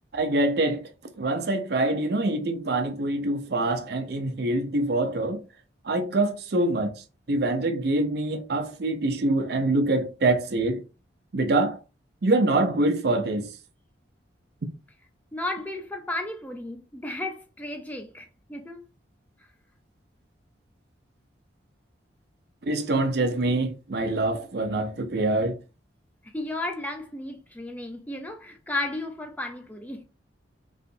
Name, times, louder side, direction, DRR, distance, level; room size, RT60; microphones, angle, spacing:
voice 1, 0.1-0.9 1.2-5.4 5.8-6.9 7.3-10.8 11.3-11.8 12.2-13.5 22.6-25.6, right 2 dB, 55° right, 0.5 m, -25 dB
voice 2, 15.3-18.8 26.2-30.0, left 2 dB, 10° left, 0.5 m, -34 dB
3.2 x 2.7 x 2.6 m
head